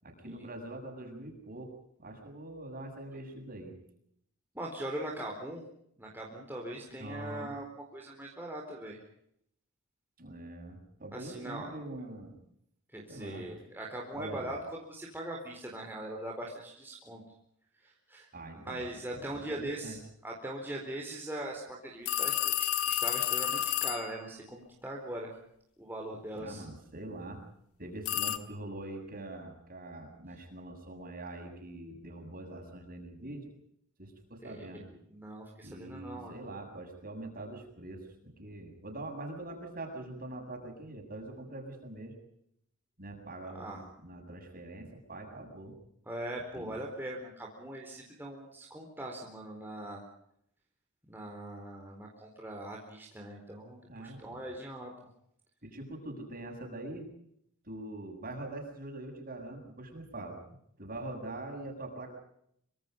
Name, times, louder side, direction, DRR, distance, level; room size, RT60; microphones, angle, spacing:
voice 1, 0.0-1.7 2.0-3.8 6.9-7.5 10.2-12.4 13.1-13.5 14.1-14.5 18.3-18.8 19.1-20.0 26.3-27.4 27.8-33.5 34.0-34.8 35.6-42.1 43.0-45.7 46.5-46.7 53.9-54.4 55.6-57.1 57.6-60.4 60.8-62.1, right 2 dB, 40° right, 2 dB, 7.3 m, -43 dB
voice 2, 4.5-5.6 6.0-9.0 11.1-11.7 12.9-17.2 17.8-18.3 18.6-20.0 20.2-25.3 25.8-26.6 34.4-36.3 43.5-43.8 46.1-50.0 51.1-54.9, right 1 dB, 10° right, -1 dB, 4.2 m, -41 dB
sound 1, 22.1-24.2 28.1-28.4, left 11 dB, 70° left, 1.8 m, -30 dB
26.0 x 25.0 x 5.3 m, 0.72 s
head